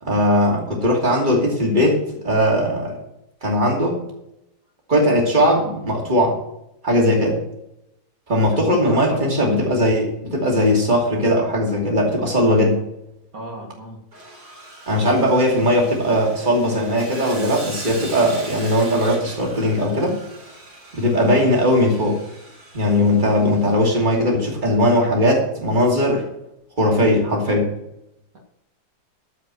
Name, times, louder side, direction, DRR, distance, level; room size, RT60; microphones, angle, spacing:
voice 1, 0.0-3.0 3.4-4.0 4.9-6.4 6.8-7.4 8.3-12.8 14.9-20.2 20.9-22.2 22.7-26.3 26.8-27.7, equal, 30° right, -1 dB, 2.7 m, -19 dB
voice 2, 8.9-9.3 13.3-14.0, equal, 65° right, -1 dB, 2.4 m, -33 dB
Sawing, 14.1-24.4, right 2 dB, 85° right, 4.1 m, -39 dB
14.0 x 5.2 x 7.6 m, 0.83 s
omnidirectional pair, 1.7 m